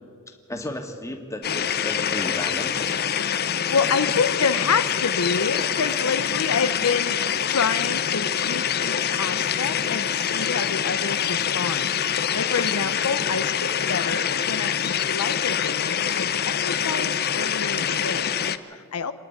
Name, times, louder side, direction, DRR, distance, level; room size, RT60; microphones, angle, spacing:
voice 1, 0.3-2.9 18.4-18.5, left 1 dB, 15° left, 3 dB, 1.8 m, -34 dB
sound 1, 1.4-18.6, left 8 dB, 45° left, 0.6 m, -25 dB
voice 2, 3.7-7.2 7.5-11.9 12.3-18.3 18.7-19.1, left 5 dB, 90° left, 11 dB, 0.8 m, -28 dB
26.5 x 10.5 x 9.2 m, 2.1 s
head